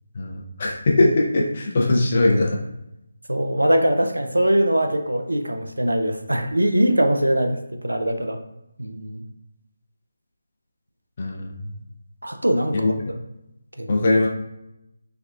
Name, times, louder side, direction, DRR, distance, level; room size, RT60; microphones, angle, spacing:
voice 1, 0.1-2.6 11.2-11.6 12.7-12.9 13.9-14.3, left 2 dB, 40° left, -1 dB, 0.6 m, -20 dB
voice 2, 3.3-8.4 8.8-9.2 12.2-12.9 13.8-14.0, right 1 dB, 80° right, 6 dB, 0.4 m, -22 dB
3.4 x 2.3 x 2.3 m, 0.86 s
figure-of-eight pair, 155°, 0 cm